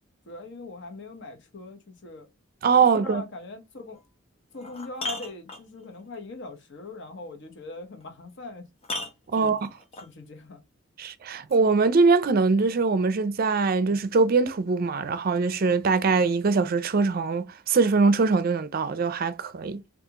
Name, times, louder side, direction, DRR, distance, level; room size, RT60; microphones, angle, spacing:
voice 1, 0.3-2.3 2.9-4.0 4.5-8.7 9.4-9.6 10.0-10.6, left 2 dB, 60° left, 0.8 m, -41 dB
voice 2, 2.6-3.2 9.3-9.7 11.0-19.8, right 4 dB, 45° right, 0.4 m, -22 dB
sound 1, 3.9-4.0 4.5-6.0 8.0-8.1 8.8-10.1 11.5-11.6, left 2 dB, 30° left, 0.7 m, -36 dB
3.6 x 2.4 x 2.8 m
head